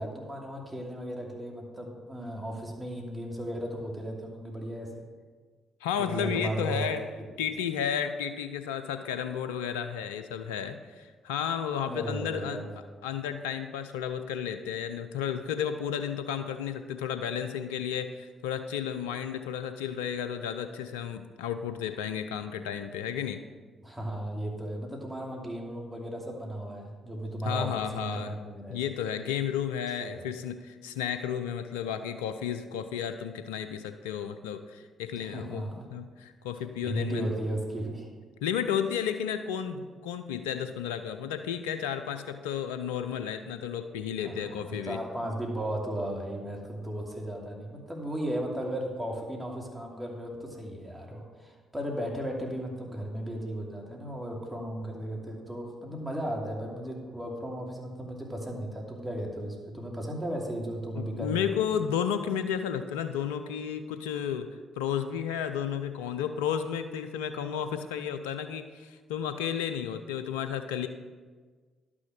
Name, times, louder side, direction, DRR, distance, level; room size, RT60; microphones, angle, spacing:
voice 1, 0.0-4.9 6.0-6.9 7.2-7.3 11.9-12.7 23.8-28.8 30.0-30.2 35.1-35.9 36.8-38.1 44.2-61.5, right 1 dB, 10° right, -1 dB, 2.7 m, -35 dB
voice 2, 5.8-7.0 7.4-12.6 13.0-23.4 27.4-28.3 28.7-35.6 35.9-37.3 38.4-45.0 60.9-64.5 64.8-70.9, left 8 dB, 85° left, 9 dB, 0.4 m, -32 dB
11.5 x 6.2 x 5.9 m, 1.4 s
hypercardioid pair, 45°, 0 cm